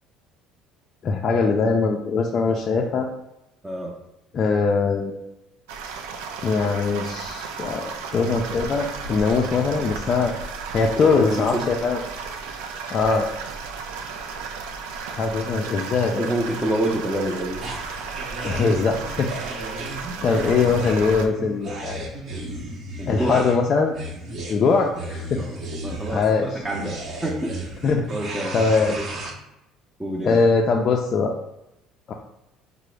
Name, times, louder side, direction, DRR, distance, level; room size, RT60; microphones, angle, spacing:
voice 1, 1.0-3.1 4.3-5.2 6.4-10.3 10.7-12.0 12.9-13.3 15.2-16.3 18.4-19.3 20.2-22.1 23.1-23.9 24.5-25.4 26.1-26.5 27.8-28.0 28.5-29.0 30.2-31.3 32.1-32.2, left 4 dB, 50° left, 1 dB, 0.3 m, -21 dB
voice 2, 3.6-4.0 11.0-11.7 16.2-17.7 23.0-23.5 24.6-25.1 25.4-25.6 25.8-27.8 28.1-29.1 30.0-30.4, right 1 dB, 15° right, -3 dB, 0.6 m, -28 dB
sound 1, 5.7-21.3, right 5 dB, 85° right, 0.3 m, -34 dB
sound 2, 17.6-29.3, right 2 dB, 55° right, 0.8 m, -34 dB
3.6 x 2.0 x 3.1 m, 0.87 s
supercardioid pair, 75°, 0 cm